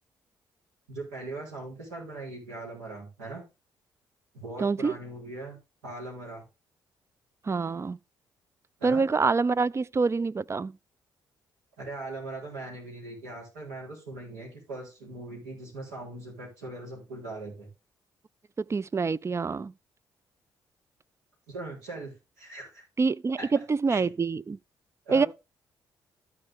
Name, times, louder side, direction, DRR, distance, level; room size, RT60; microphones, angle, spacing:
voice 1, 0.9-3.4 4.3-5.6 5.8-6.5 8.8-9.1 11.8-17.7 21.5-22.8 23.4-23.5 23.9-24.1 25.1-25.3, right 2 dB, 85° right, 3.6 m, -40 dB
voice 2, 4.6-4.9 7.4-8.0 8.8-10.8 18.6-19.7 23.0-24.6 25.1-25.3, right 4 dB, 30° right, 0.4 m, -26 dB
14.0 x 4.8 x 3.6 m
hypercardioid pair, 45°, 10 cm